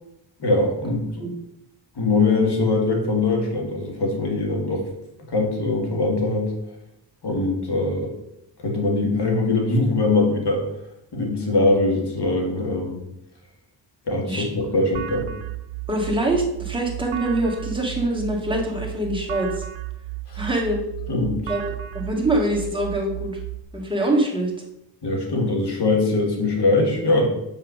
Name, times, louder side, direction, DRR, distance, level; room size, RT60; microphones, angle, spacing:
voice 1, 0.4-1.3 2.0-4.8 5.3-6.5 7.2-8.1 8.6-10.6 11.1-13.0 14.1-15.3 20.3-20.4 21.1-21.5 25.0-27.3, left 2 dB, 60° left, 1 dB, 2.1 m, -22 dB
voice 2, 14.2-14.7 15.9-19.6 20.3-20.8 21.5-23.3 23.7-24.5, right 1 dB, 10° right, -1 dB, 1.9 m, -24 dB
sound 1, 14.9-23.6, right 14 dB, 85° right, 0.7 m, -34 dB
5.7 x 4.8 x 6.3 m, 0.82 s
wide cardioid pair, 105°, 45 cm